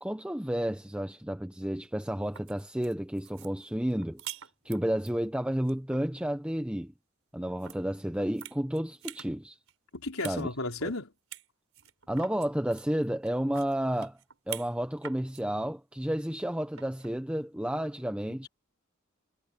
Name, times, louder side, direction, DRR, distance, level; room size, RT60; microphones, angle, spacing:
voice 1, 0.0-4.2 4.6-6.9 7.3-9.6 10.2-10.5 10.8-10.9 12.1-14.2 14.5-18.5, equal, 5° right, 0.8 m, -31 dB
sound 1, 2.2-5.1 5.5-6.0 7.6-7.8 8.2-9.3 9.7-10.4 10.7-10.8 11.3-11.5 11.7-14.7 15.0-15.4 16.7-17.1, right 11 dB, 75° right, 5.2 m, -45 dB
voice 2, 9.9-11.1, left 2 dB, 80° left, 4.1 m, -34 dB
head